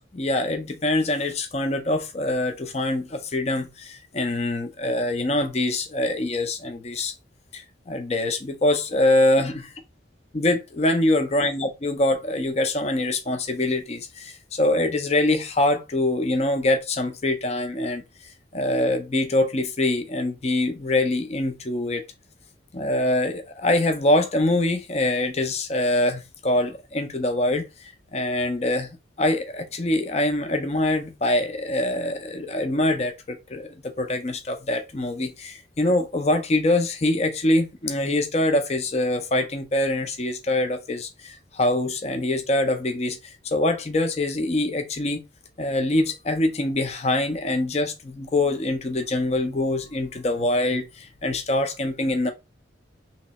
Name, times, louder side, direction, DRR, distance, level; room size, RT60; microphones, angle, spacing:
voice 1, 0.1-7.1 7.5-9.6 10.3-18.0 18.5-22.0 22.7-27.6 28.1-45.2 45.6-52.3, left 1 dB, 35° left, 0.6 m, -24 dB
3.2 x 2.9 x 4.1 m
head